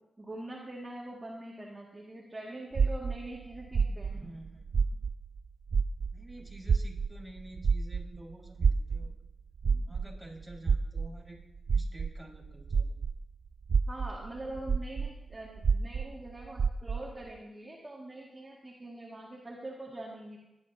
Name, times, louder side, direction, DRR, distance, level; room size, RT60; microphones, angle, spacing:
voice 1, 0.2-4.1 13.9-20.4, right 1 dB, 25° right, -3 dB, 2.1 m, -43 dB
sound 1, 2.7-5.4 5.7-13.2 13.6-17.1, right 5 dB, 65° right, 0.3 m, -29 dB
voice 2, 3.7-5.0 6.1-9.2 9.6-11.4 11.7-12.9, right 1 dB, ahead, -3 dB, 5.0 m, -49 dB
20.0 x 10.5 x 2.8 m, 0.96 s
cardioid pair, 50°, 0 cm